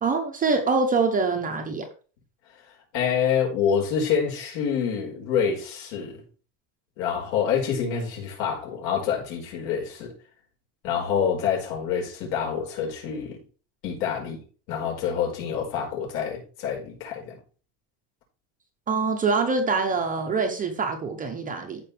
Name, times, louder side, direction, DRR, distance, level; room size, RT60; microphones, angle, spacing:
voice 1, 0.0-1.9 18.9-21.8, right 4 dB, 20° right, 0.9 m, -24 dB
voice 2, 2.9-6.2 7.0-10.1 10.8-13.4 13.8-14.4 14.7-17.4, left 7 dB, 60° left, 5.6 m, -27 dB
14.5 x 5.5 x 3.4 m
cardioid pair, 180°, 45 cm